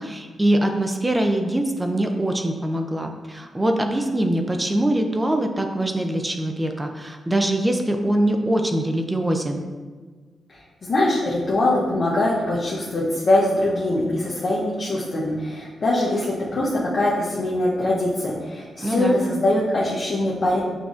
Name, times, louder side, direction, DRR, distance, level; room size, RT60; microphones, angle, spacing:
voice 1, 0.0-9.6 18.8-19.2, right 1 dB, 15° right, 4 dB, 0.3 m, -23 dB
voice 2, 10.8-20.6, left 1 dB, 45° left, -6 dB, 0.7 m, -22 dB
6.7 x 2.6 x 2.4 m, 1.4 s
cardioid pair, 115°, 0 cm